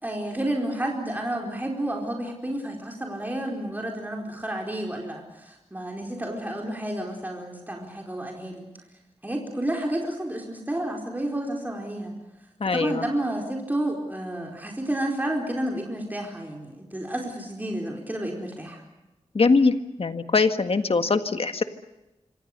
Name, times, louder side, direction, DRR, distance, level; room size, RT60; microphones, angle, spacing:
voice 1, 0.0-8.7 9.2-12.1 12.7-18.8, right 1 dB, 15° right, 0 dB, 4.5 m, -30 dB
voice 2, 12.6-13.0 19.3-21.6, left 4 dB, 60° left, 8 dB, 1.7 m, -22 dB
27.0 x 25.5 x 6.7 m, 0.99 s
wide cardioid pair, 100°, 11 cm